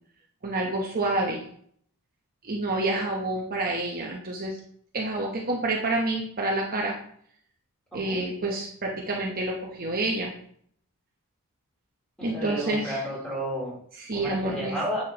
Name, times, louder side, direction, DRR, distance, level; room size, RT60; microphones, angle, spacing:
voice 1, 0.4-1.4 2.4-4.6 4.9-7.0 7.9-10.3 12.2-13.0 13.9-14.8, right 2 dB, 40° right, -1 dB, 1.0 m, -28 dB
voice 2, 12.2-13.8 14.1-15.0, right 1 dB, 5° left, -6 dB, 3.4 m, -32 dB
9.7 x 5.8 x 2.9 m, 0.63 s
head